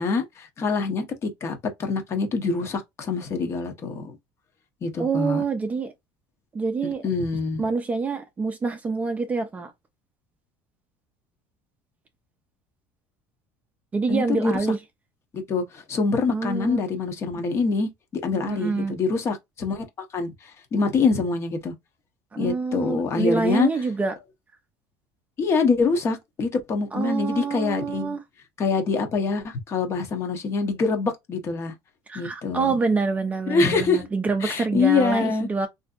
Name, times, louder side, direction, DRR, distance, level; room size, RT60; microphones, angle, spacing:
voice 1, 0.0-4.2 4.8-5.4 7.0-7.6 14.1-14.5 15.3-17.9 18.2-19.8 20.1-20.3 20.7-21.7 22.4-23.7 25.4-28.2 28.6-31.7 32.1-32.7 33.5-34.1 34.4-35.5, left 4 dB, 30° left, 0.8 m, -25 dB
voice 2, 5.0-5.9 6.5-7.0 7.6-9.7 13.9-14.8 16.3-16.8 18.3-19.0 22.3-24.1 26.9-28.2 32.1-35.7, right 4 dB, 15° right, 0.4 m, -26 dB
3.3 x 2.6 x 2.4 m
cardioid pair, 150°, 9 cm